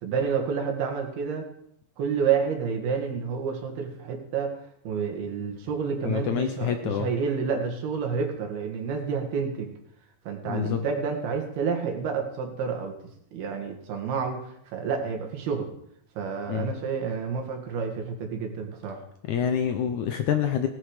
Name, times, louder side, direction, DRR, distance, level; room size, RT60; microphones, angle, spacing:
voice 1, 0.0-1.5 2.0-4.6 4.9-9.7 10.3-13.0 13.3-15.7 16.2-19.0, right 6 dB, 85° right, 3 dB, 4.0 m, -29 dB
voice 2, 6.0-7.1 10.4-10.8 16.5-16.7 19.3-20.7, left 9 dB, 75° left, 7 dB, 1.8 m, -27 dB
17.5 x 11.5 x 5.0 m, 0.73 s
omnidirectional pair, 4.3 m